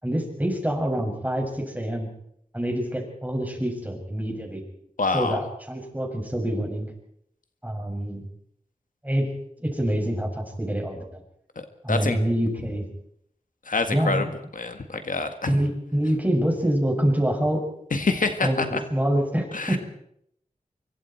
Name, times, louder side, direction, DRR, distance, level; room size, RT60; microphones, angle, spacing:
voice 1, 0.0-2.1 2.5-4.6 5.1-6.9 7.6-8.3 9.0-9.3 9.6-11.0 11.8-12.9 13.9-14.3 15.5-17.6 18.4-19.8, right 1 dB, 10° right, 1 dB, 6.9 m, -26 dB
voice 2, 5.0-5.4 11.6-12.2 13.7-14.3 14.5-15.5 17.9-18.8 19.5-19.8, left 3 dB, 70° left, 7 dB, 1.8 m, -26 dB
25.0 x 23.5 x 4.6 m, 0.71 s
wide cardioid pair, 80°, 14 cm